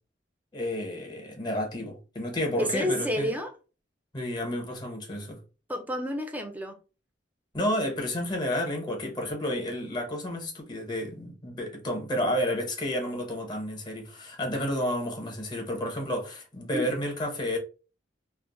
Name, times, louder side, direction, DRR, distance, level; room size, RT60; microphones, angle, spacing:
voice 1, 0.5-3.3 4.1-5.4 7.5-17.6, left 1 dB, 25° left, 0.7 m, -31 dB
voice 2, 2.6-3.5 5.7-6.7 16.7-16.9, equal, 10° right, 0.5 m, -29 dB
2.3 x 2.0 x 3.6 m
head